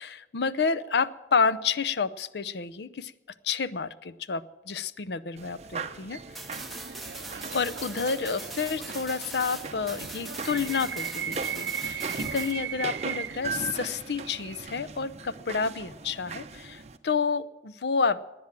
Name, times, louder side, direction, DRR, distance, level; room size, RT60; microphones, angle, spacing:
voice 1, 0.0-3.1 3.4-6.2 7.5-18.2, left 5 dB, 70° left, 16 dB, 0.6 m, -29 dB
sound 1, 5.4-17.0, right 4 dB, 40° right, 0.7 m, -40 dB
sound 2, 6.3-12.5, right 2 dB, ahead, 1.2 m, -41 dB
sound 3, 6.5-14.7, right 8 dB, 80° right, 0.6 m, -38 dB
18.0 x 10.5 x 7.3 m, 1.0 s
head